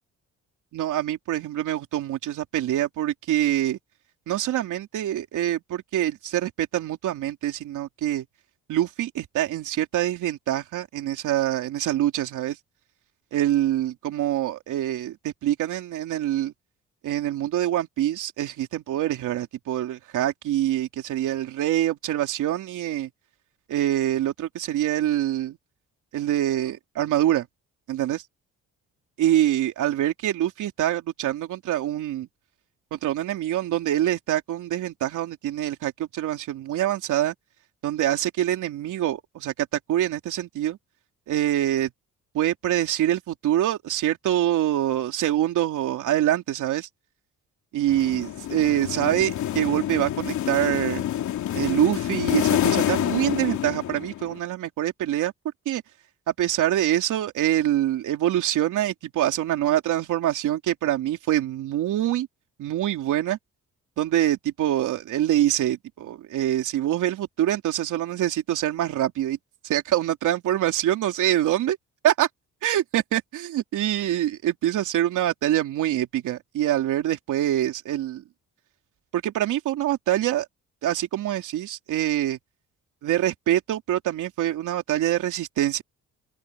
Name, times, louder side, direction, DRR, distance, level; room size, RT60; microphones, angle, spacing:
voice 1, 0.7-3.8 4.3-8.3 8.7-12.6 13.3-16.5 17.0-23.1 23.7-25.6 26.1-27.5 27.9-28.2 29.2-32.3 32.9-37.3 37.8-40.8 41.3-41.9 42.3-46.9 47.7-51.1 51.5-55.3 55.6-55.8 56.3-62.3 62.6-63.4 64.0-69.4 69.6-71.8 72.0-72.3 72.6-78.2 79.1-80.5 80.8-82.4 83.0-85.8, right 12 dB, 80° right, 3.2 m, -25 dB
sound 1, 47.9-54.4, left 11 dB, 70° left, 2.8 m, -27 dB
open air
cardioid pair, 90°, 30 cm